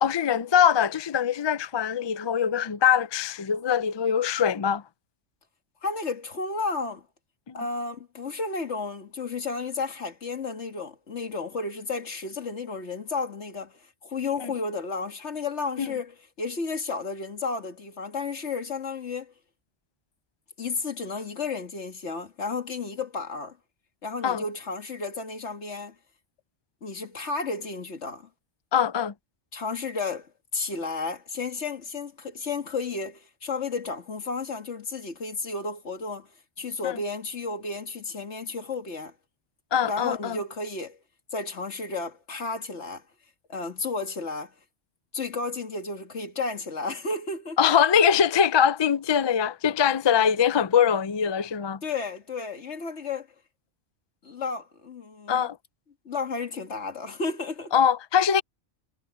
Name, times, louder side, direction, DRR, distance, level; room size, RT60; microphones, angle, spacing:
voice 1, 0.0-4.8 7.5-7.6 14.4-14.5 15.8-15.9 24.2-24.4 28.7-29.1 36.8-37.0 39.7-40.4 47.6-51.8 55.3-55.6 57.7-58.4, left 8 dB, 45° left, 0.3 m, -23 dB
voice 2, 5.8-7.1 7.5-19.3 20.6-23.6 24.0-26.0 26.8-28.3 29.5-36.3 36.6-39.1 39.9-41.0 41.3-43.0 43.5-44.5 45.1-47.6 51.8-53.3 54.2-55.5 56.1-57.7, left 4 dB, 70° left, 2.1 m, -32 dB
omnidirectional pair, 1.2 m